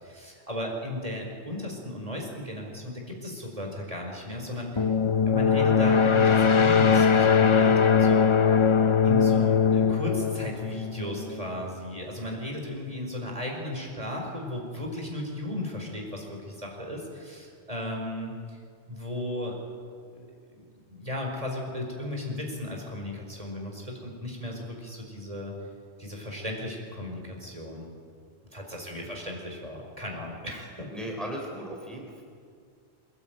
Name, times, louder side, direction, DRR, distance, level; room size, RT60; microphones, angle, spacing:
voice 1, 0.0-4.9 5.3-8.3 9.0-18.6 18.9-19.6 20.1-20.6 20.9-25.5 26.0-27.9 28.5-30.9, left 1 dB, 30° right, 0 dB, 4.8 m, -35 dB
sound 1, 4.8-11.4, left 6 dB, 30° left, 0.6 m, -21 dB
voice 2, 28.7-29.1 30.9-32.2, equal, ahead, 0 dB, 3.7 m, -37 dB
24.5 x 20.0 x 9.2 m, 2.2 s
omnidirectional pair, 1.1 m